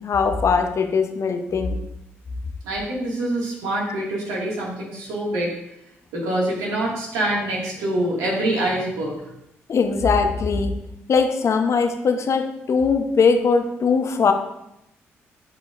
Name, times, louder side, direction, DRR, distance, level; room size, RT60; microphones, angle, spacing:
voice 1, 0.0-1.8 9.7-10.7 11.1-14.3, left 5 dB, 55° left, 6 dB, 0.9 m, -20 dB
voice 2, 2.6-5.6 6.1-9.1, right 1 dB, 80° right, -3 dB, 2.2 m, -25 dB
11.5 x 4.8 x 2.6 m, 0.83 s
hypercardioid pair, 45°, 6 cm